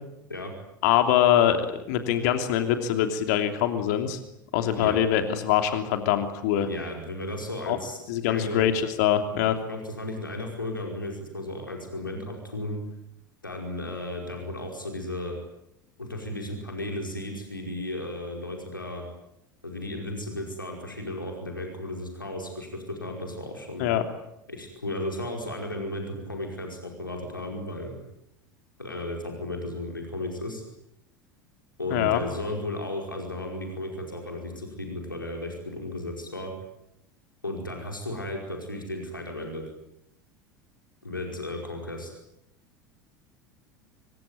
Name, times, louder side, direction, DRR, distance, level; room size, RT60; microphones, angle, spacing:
voice 1, 0.8-1.6 1.9-4.2 4.5-6.7 7.7-7.8 8.1-9.6 23.8-24.0 31.9-32.2, left 10 dB, 55° left, 7 dB, 3.0 m, -23 dB
voice 2, 6.6-8.6 9.7-12.8 13.4-15.4 16.0-19.0 19.6-23.9 24.5-28.0 28.8-30.6 31.8-36.5 37.4-39.6 41.0-42.1, left 1 dB, 85° left, 2 dB, 5.1 m, -34 dB
25.5 x 24.0 x 9.2 m, 0.83 s
figure-of-eight pair, 75°, 11 cm